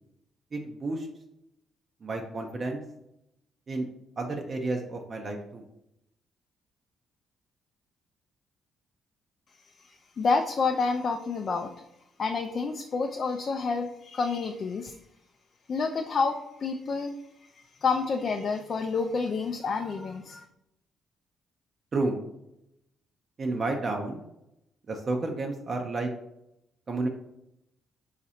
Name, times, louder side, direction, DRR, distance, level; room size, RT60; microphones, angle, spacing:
voice 1, 0.5-1.1 2.0-2.8 3.7-3.9 4.2-5.6 21.9-22.2 23.4-24.2 24.9-26.1 26.9-27.1, right 2 dB, 40° right, 2 dB, 0.5 m, -31 dB
voice 2, 9.8-11.7 12.2-15.0 15.7-17.2 17.6-20.5, left 4 dB, 50° left, 5 dB, 0.3 m, -29 dB
4.0 x 2.4 x 4.2 m, 0.84 s
cardioid pair, 90°, 0 cm